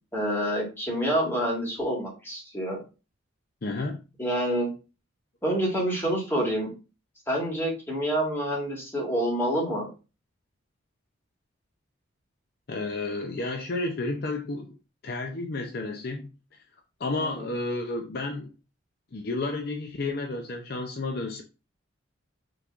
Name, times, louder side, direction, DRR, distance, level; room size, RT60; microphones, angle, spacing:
voice 1, 0.1-2.8 4.2-4.7 5.4-6.7 7.3-9.9 17.2-17.5, right 1 dB, 10° left, 1.8 m, -27 dB
voice 2, 3.6-4.0 12.7-14.8 15.0-16.3 17.0-18.5 19.1-21.4, left 2 dB, 50° left, 0.5 m, -31 dB
5.7 x 3.3 x 2.5 m
head